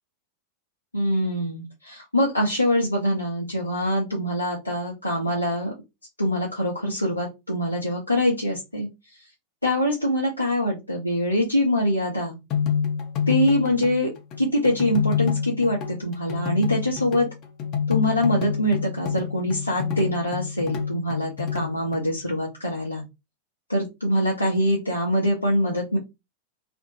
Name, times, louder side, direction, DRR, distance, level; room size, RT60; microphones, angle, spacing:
voice 1, 0.9-5.7 6.2-8.9 9.6-12.4 13.3-14.1 14.4-17.3 17.9-23.0 23.7-26.0, left 1 dB, 85° left, -3 dB, 0.6 m, -24 dB
sound 1, 12.5-22.1, left 7 dB, 35° left, 0.6 m, -28 dB
2.5 x 2.1 x 2.8 m, 0.23 s
figure-of-eight pair, 90°, 0 cm